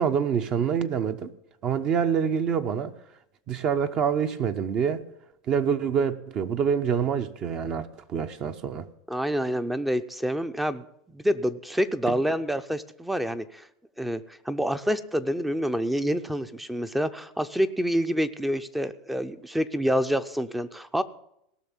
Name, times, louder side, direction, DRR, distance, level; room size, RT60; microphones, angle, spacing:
voice 1, 0.0-1.3 1.6-2.9 3.5-5.0 5.5-8.9 12.1-12.2, right 7 dB, 35° right, 0.8 m, -26 dB
voice 2, 9.1-10.8 11.1-13.7 14.0-21.0, equal, 5° right, 0.5 m, -27 dB
17.5 x 6.1 x 7.2 m
supercardioid pair, 135°, 2 cm